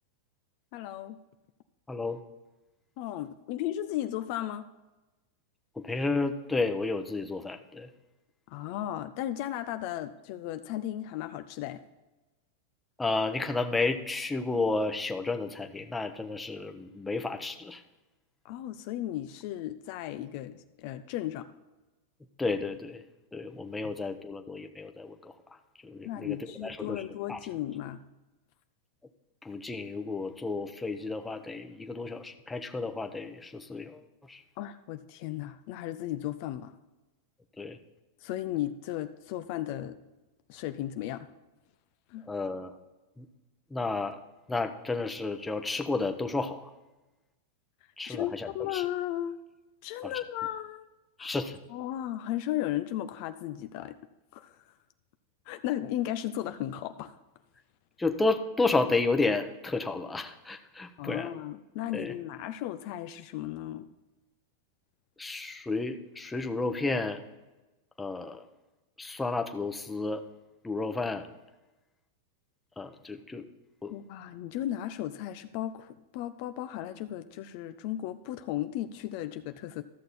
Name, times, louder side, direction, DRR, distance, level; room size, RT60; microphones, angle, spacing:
voice 1, 0.7-1.2 3.0-4.7 8.5-11.8 18.4-21.5 23.8-23.9 26.0-28.0 34.6-36.7 38.2-40.0 40.5-41.3 42.1-42.3 48.1-49.4 49.8-50.8 51.2-51.4 51.7-54.0 54.3-54.6 55.5-57.1 61.0-63.9 73.9-79.8, left 13 dB, 55° left, 10 dB, 0.6 m, -35 dB
voice 2, 1.9-2.2 5.8-7.9 13.0-17.8 22.4-23.0 23.3-25.3 25.8-27.0 27.3-27.4 29.4-34.0 34.3-34.4 37.6-37.8 42.3-42.7 43.2-43.3 43.7-44.2 44.5-46.7 48.0-48.8 50.0-50.1 51.2-51.6 58.0-61.3 61.9-62.1 65.2-67.2 68.0-68.5 69.0-70.2 70.6-71.3 72.8-73.5 73.8-73.9, left 3 dB, 10° left, 6 dB, 0.9 m, -32 dB
13.5 x 6.5 x 4.2 m, 1.1 s
hypercardioid pair, 120°, 0 cm